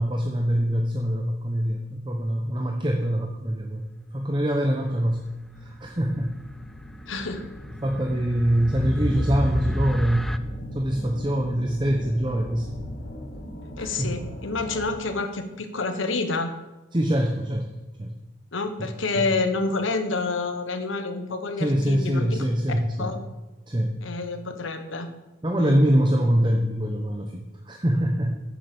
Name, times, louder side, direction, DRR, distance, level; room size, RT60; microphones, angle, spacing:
voice 1, 0.0-3.8 4.1-5.3 5.6-6.4 7.8-10.3 10.7-12.8 13.8-14.2 16.9-18.2 18.8-19.3 21.6-23.1 23.7-24.0 25.4-28.4, equal, 25° right, 2 dB, 0.8 m, -24 dB
sound 1, 3.7-3.8 4.5-15.2, equal, 55° left, 2.1 m, -40 dB
sound 2, 6.3-10.4, equal, ahead, 0.4 m, -30 dB
voice 2, 7.1-7.4 13.8-16.5 18.5-22.4 23.0-23.2 24.0-25.1 25.6-25.8, left 3 dB, 80° left, 7 dB, 1.2 m, -28 dB
8.8 x 7.3 x 7.0 m, 1.1 s
head